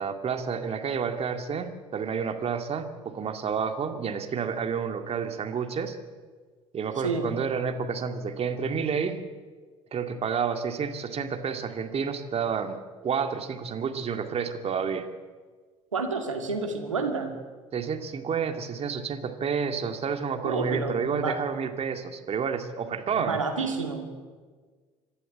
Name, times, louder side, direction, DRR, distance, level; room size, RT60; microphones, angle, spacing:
voice 1, 0.0-6.0 6.7-9.2 9.9-15.1 17.7-23.4, right 6 dB, 40° right, 7 dB, 2.1 m, -30 dB
voice 2, 15.9-17.4 20.4-21.4 23.1-24.3, right 4 dB, 85° right, 3 dB, 2.3 m, -30 dB
26.5 x 11.5 x 8.8 m, 1.5 s
figure-of-eight pair, 60°, 16 cm